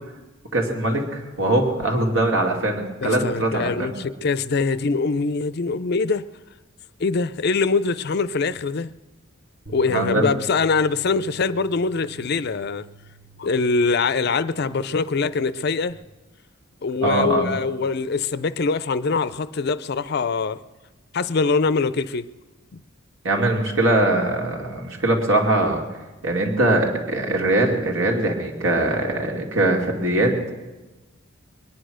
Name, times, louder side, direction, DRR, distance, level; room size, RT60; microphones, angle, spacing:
voice 1, 0.5-4.0 9.9-10.3 17.0-17.5 23.2-25.8 26.2-30.3, right 2 dB, 75° right, 2.6 m, -21 dB
voice 2, 3.0-6.3 7.0-8.9 9.7-12.9 13.4-16.0 16.8-20.6 21.1-22.3 22.7-22.8, left 4 dB, 50° left, 0.4 m, -23 dB
Bass guitar, 9.7-15.9, right 5 dB, 50° right, 1.3 m, -47 dB
22.0 x 10.0 x 6.3 m
head